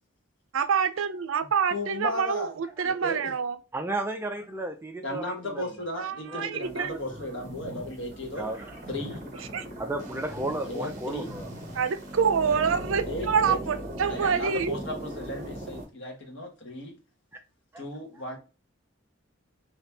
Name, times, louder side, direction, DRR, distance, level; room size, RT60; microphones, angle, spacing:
voice 1, 0.5-3.6 6.0-7.0 9.5-9.7 11.7-14.8, right 6 dB, 75° right, 0.4 m, -26 dB
voice 2, 1.7-2.5 2.8-3.3 5.0-8.5 8.9-9.3 10.6-11.3 13.1-13.6 14.1-16.9 17.8-18.4, left 1 dB, 60° left, 1.1 m, -35 dB
voice 3, 3.7-5.6 6.3-6.5 8.4-8.6 9.8-11.5 17.7-17.8, right 2 dB, 10° right, 0.4 m, -33 dB
sound 1, 6.6-15.8, right 1 dB, 35° right, 1.1 m, -39 dB
3.5 x 2.8 x 2.7 m
head